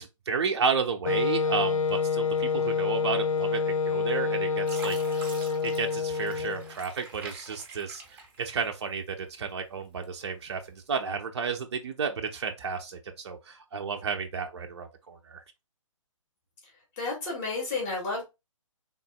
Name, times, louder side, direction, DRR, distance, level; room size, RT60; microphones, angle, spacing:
voice 1, 0.0-5.2 5.6-15.4, right 5 dB, 50° right, 0.5 m, -32 dB
Wind instrument woodwind instrument, 1.1-6.7, left 5 dB, 80° left, 0.4 m, -27 dB
Fill (with liquid), 3.9-4.3 4.6-9.0 9.5-10.3 10.8-11.0, right 3 dB, 10° right, 0.8 m, -46 dB
voice 2, 17.0-18.2, left 3 dB, 30° left, 2.2 m, -31 dB
4.0 x 3.6 x 2.2 m
figure-of-eight pair, 135°, 17 cm